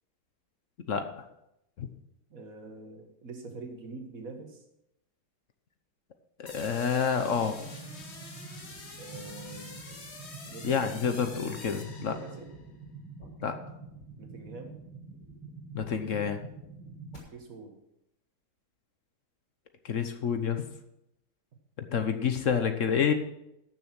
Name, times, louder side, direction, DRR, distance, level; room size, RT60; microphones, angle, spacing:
voice 1, 2.3-4.6 9.0-9.8 10.5-11.0 12.0-12.5 14.2-14.8 17.3-17.7, right 3 dB, 45° right, 3 dB, 2.0 m, -44 dB
voice 2, 6.4-7.6 10.6-12.1 13.4-13.6 15.7-16.4 19.8-20.6 21.8-23.1, left 7 dB, 55° left, 8 dB, 0.9 m, -28 dB
sound 1, 6.5-12.6, left 3 dB, 35° left, 1.7 m, -47 dB
sound 2, 7.2-17.2, right 3 dB, 90° left, 4.4 m, -47 dB
14.0 x 6.8 x 6.0 m, 0.84 s
omnidirectional pair, 2.3 m